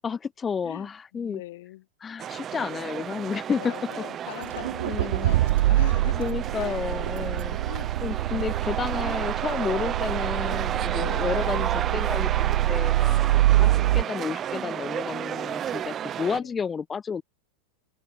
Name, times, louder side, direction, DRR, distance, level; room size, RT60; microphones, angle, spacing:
voice 1, 0.0-1.4 2.0-3.7 4.9-5.3 6.2-7.6 8.0-17.2, left 6 dB, 20° left, 1.1 m, -31 dB
voice 2, 0.6-1.9 3.6-6.3 6.6-6.8 7.7-7.9 10.9-11.5 13.5-14.3 16.3-16.6, left 17 dB, 55° left, 5.6 m, -41 dB
sound 1, 2.2-16.4, right 10 dB, 25° right, 1.4 m, -32 dB
Accelerating revving vroom, 4.4-14.0, right 16 dB, 55° right, 0.9 m, -25 dB
figure-of-eight pair, 90°, 0 cm